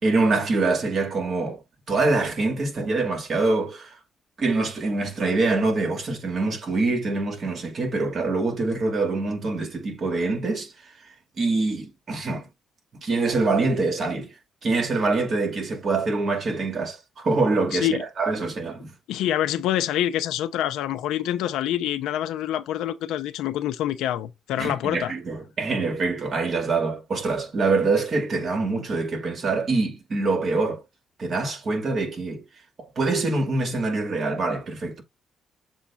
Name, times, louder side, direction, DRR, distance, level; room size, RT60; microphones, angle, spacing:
voice 1, 0.0-1.6 1.9-4.0 4.4-10.7 11.4-12.5 13.0-14.3 14.6-18.9 24.6-30.8 31.2-32.4 32.8-35.0, right 3 dB, 50° right, 2.4 m, -25 dB
voice 2, 17.7-18.0 19.1-25.1, left 12 dB, 90° left, 0.7 m, -26 dB
7.2 x 2.5 x 5.6 m
cardioid pair, 90°, 0 cm